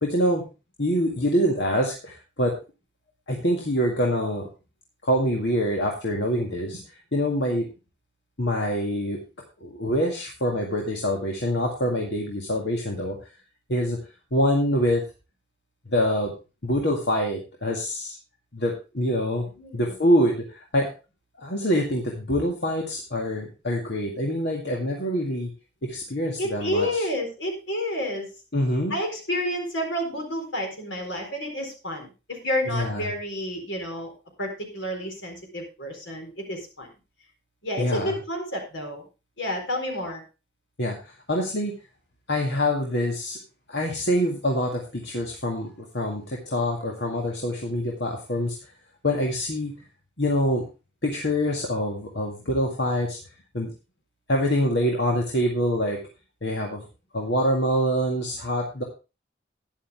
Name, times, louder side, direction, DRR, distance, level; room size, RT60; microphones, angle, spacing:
voice 1, 0.0-0.4 0.8-2.5 3.3-4.4 5.0-7.7 8.4-9.2 9.6-13.2 13.7-14.0 14.3-15.0 15.9-16.3 16.6-18.2 18.5-19.5 19.7-20.9 21.4-25.5 25.8-27.0 28.5-28.9 32.7-33.0 37.8-38.1 40.8-41.7 42.3-43.4 43.7-48.6 49.0-49.7 50.2-50.6 51.0-53.2 53.5-53.7 54.3-56.0 56.4-56.8 57.1-58.8, equal, 65° left, -1 dB, 2.1 m, -25 dB
voice 2, 19.6-19.9 26.4-28.3 28.9-34.1 34.4-36.9 37.6-39.0 39.4-40.2, left 1 dB, 85° left, 2 dB, 4.2 m, -30 dB
12.0 x 10.5 x 3.5 m, 0.30 s
head